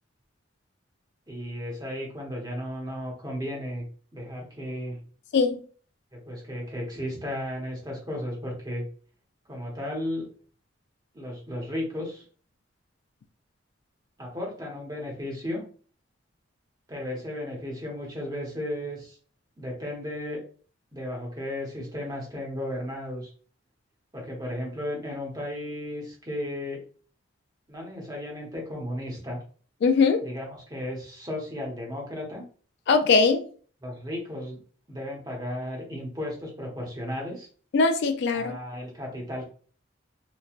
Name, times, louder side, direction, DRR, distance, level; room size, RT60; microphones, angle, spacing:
voice 1, 1.3-3.8 4.1-5.0 6.1-8.8 9.5-10.3 11.1-12.2 14.2-15.6 16.9-19.2 19.6-20.4 20.9-23.3 24.1-26.8 27.7-29.4 30.2-32.5 33.8-34.6 34.9-37.5 38.3-39.5, left 1 dB, 20° right, 0.9 m, -34 dB
voice 2, 29.8-30.2 32.9-33.4 37.7-38.6, left 4 dB, 60° left, 0.3 m, -21 dB
3.0 x 2.2 x 2.4 m
head